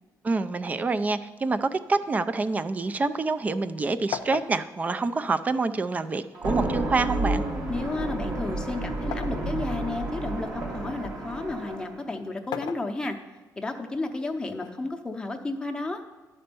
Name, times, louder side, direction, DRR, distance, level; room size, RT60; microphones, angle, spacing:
voice 1, 0.2-7.5, right 3 dB, 20° right, 12 dB, 0.4 m, -27 dB
sound 1, 2.5-3.8 4.1-6.1 6.9-9.5 10.0-11.2 12.3-13.4 14.5-15.6, left 9 dB, 90° left, 0.5 m, -40 dB
sound 2, 6.3-12.0, right 2 dB, 85° right, 2.5 m, -30 dB
voice 2, 7.7-13.2 13.6-16.0, left 2 dB, 10° left, 4 dB, 0.7 m, -32 dB
11.5 x 4.3 x 6.8 m, 1.3 s
cardioid pair, 160°, 7 cm